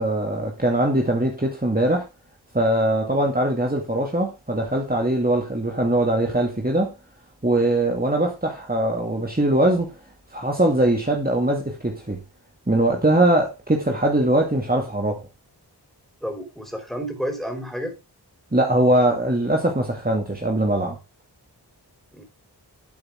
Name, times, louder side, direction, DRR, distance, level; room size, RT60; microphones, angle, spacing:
voice 1, 0.0-2.0 2.5-6.9 7.4-9.9 10.3-12.2 12.7-15.2 18.5-21.0, right 1 dB, 20° right, 2.4 m, -21 dB
voice 2, 16.2-17.9 22.1-22.2, equal, ahead, 4.6 m, -30 dB
12.0 x 8.6 x 3.6 m
wide cardioid pair, 60°, 41 cm